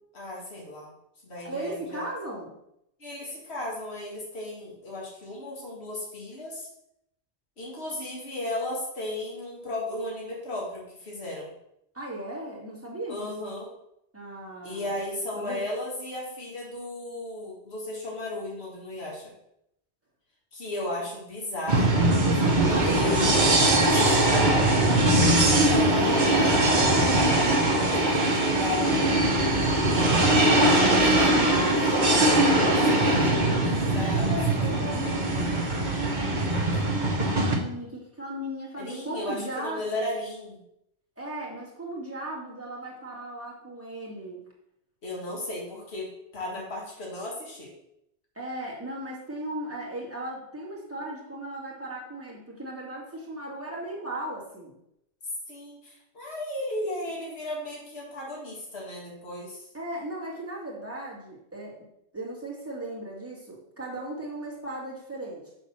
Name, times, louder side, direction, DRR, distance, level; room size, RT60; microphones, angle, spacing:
voice 1, 0.1-0.9 1.2-2.0 3.0-6.7 7.6-11.5 13.1-13.7 14.6-19.3 20.5-22.1 22.7-23.2 23.8-24.5 25.5-26.5 27.0-29.1 30.3-34.3 34.6-34.8 38.8-40.6 45.0-47.7 55.5-59.6, left 1 dB, 65° left, -3 dB, 2.2 m, -35 dB
voice 2, 1.4-2.5 11.9-13.3 14.1-15.0 15.4-15.7 22.3-23.1 23.6-24.6 34.0-40.0 41.2-44.4 48.3-54.7 59.7-61.8 62.1-65.4, right 1 dB, 10° right, -5 dB, 2.2 m, -36 dB
sound 1, 21.7-37.6, right 1 dB, 45° right, 1.3 m, -21 dB
6.2 x 4.2 x 6.4 m, 0.78 s
omnidirectional pair, 1.2 m